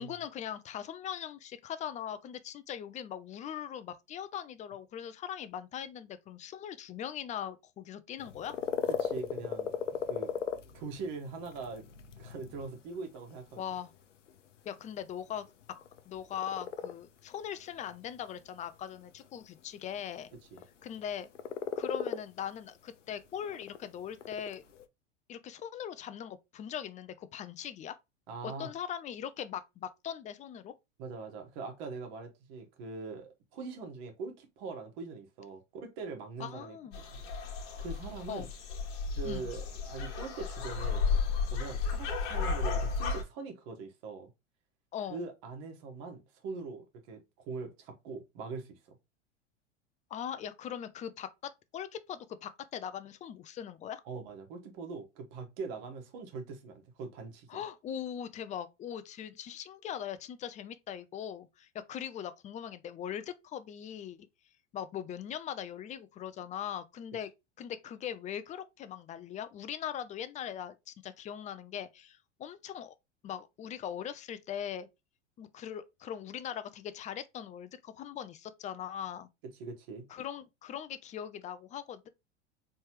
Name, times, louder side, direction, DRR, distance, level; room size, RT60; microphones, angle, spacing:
voice 1, 0.0-8.6 13.6-13.9 14.7-15.5 16.1-20.3 20.8-21.3 21.8-24.6 25.3-28.0 28.4-30.7 36.4-37.0 38.3-38.5 39.2-39.5 44.9-45.2 50.1-51.3 51.7-54.0 57.5-64.2 64.7-67.3 67.6-73.0 73.2-74.9 75.4-79.3 80.1-82.1, left 9 dB, 20° left, 0.4 m, -40 dB
sound 1, 8.2-24.8, left 7 dB, 85° left, 0.6 m, -39 dB
voice 2, 9.0-9.7 10.1-10.3 10.7-11.8 12.2-13.7 20.5-20.6 28.3-28.7 31.0-36.8 37.1-37.2 37.8-38.5 39.2-41.0 41.5-44.3 45.1-48.9 54.0-57.5 79.6-80.1, right 4 dB, 50° right, 1.5 m, -42 dB
sound 2, 36.9-43.2, left 5 dB, 55° left, 1.3 m, -33 dB
4.2 x 3.3 x 3.0 m
hypercardioid pair, 90°, 36 cm